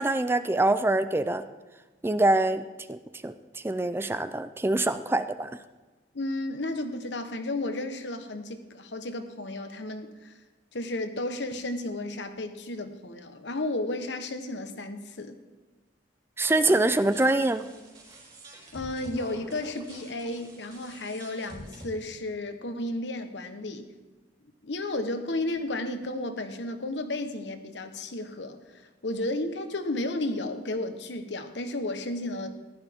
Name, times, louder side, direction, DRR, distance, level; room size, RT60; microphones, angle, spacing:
voice 1, 0.0-1.4 2.0-2.6 2.9-3.0 3.2-3.3 3.6-5.5 16.4-17.7, right 2 dB, 15° right, 12 dB, 0.4 m, -24 dB
voice 2, 6.1-10.4 10.7-15.4 18.7-23.9 24.6-32.5, left 2 dB, 80° left, 7 dB, 1.2 m, -33 dB
mythical mouth of the ancients, 16.4-21.9, right 1 dB, 30° right, 4.4 m, -47 dB
15.0 x 11.5 x 3.6 m, 1.2 s
head